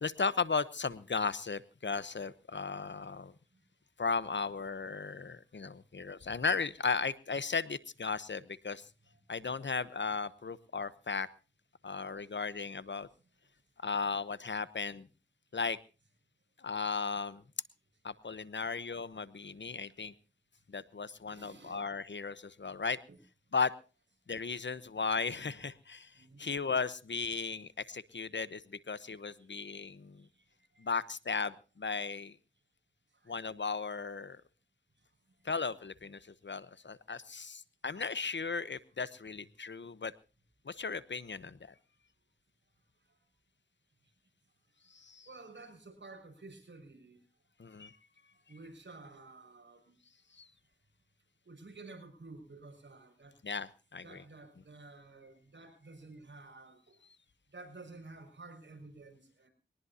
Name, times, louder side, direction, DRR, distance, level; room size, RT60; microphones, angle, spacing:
voice 1, 0.0-3.3 4.0-8.9 9.3-11.3 11.8-13.1 13.8-15.1 15.5-15.8 16.6-17.4 18.0-20.1 20.7-23.0 23.5-23.7 24.3-26.1 26.4-30.2 30.8-32.3 33.3-34.4 35.4-40.1 40.7-41.6 44.9-45.3 47.6-47.9 50.4-50.5 53.4-54.2, left 5 dB, 65° left, 16 dB, 1.0 m, -36 dB
voice 2, 21.3-21.8 23.1-23.2 26.2-26.4 29.4-29.5 30.2-30.4 30.7-31.0 33.1-33.4 45.3-47.2 48.5-49.9 51.5-53.4 54.0-57.0 57.5-59.5, right 3 dB, 65° right, 4 dB, 6.2 m, -52 dB
22.0 x 19.0 x 2.8 m, 0.33 s
wide cardioid pair, 60°, 20 cm